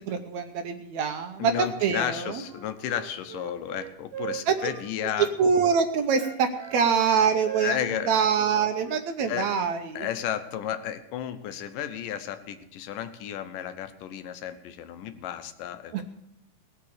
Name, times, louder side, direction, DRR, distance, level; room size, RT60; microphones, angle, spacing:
voice 1, 0.1-2.4 4.5-4.6 5.2-7.8 8.1-10.1 15.9-16.0, right 6 dB, 70° right, 7 dB, 1.9 m, -24 dB
voice 2, 1.4-5.3 7.6-8.2 9.3-9.5 10.0-16.0, left 10 dB, 85° left, 9 dB, 2.6 m, -33 dB
Wind instrument woodwind instrument, 2.4-5.7 6.1-9.5, right 10 dB, 85° right, 3.6 m, -40 dB
18.5 x 6.8 x 6.6 m, 0.81 s
omnidirectional pair, 3.7 m